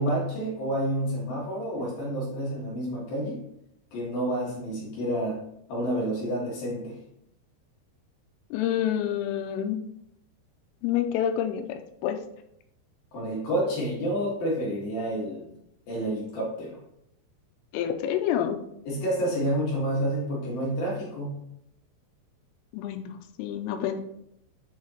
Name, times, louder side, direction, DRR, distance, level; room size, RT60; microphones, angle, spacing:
voice 1, 0.0-3.4 3.9-5.4 5.7-7.0 13.1-15.5 15.9-16.8 18.9-21.4, right 1 dB, 60° left, -4 dB, 2.9 m, -29 dB
voice 2, 8.5-9.9 10.8-12.2 17.7-18.6 22.7-24.0, left 10 dB, 85° left, 7 dB, 3.2 m, -28 dB
8.1 x 4.8 x 2.9 m, 0.78 s
omnidirectional pair, 5.9 m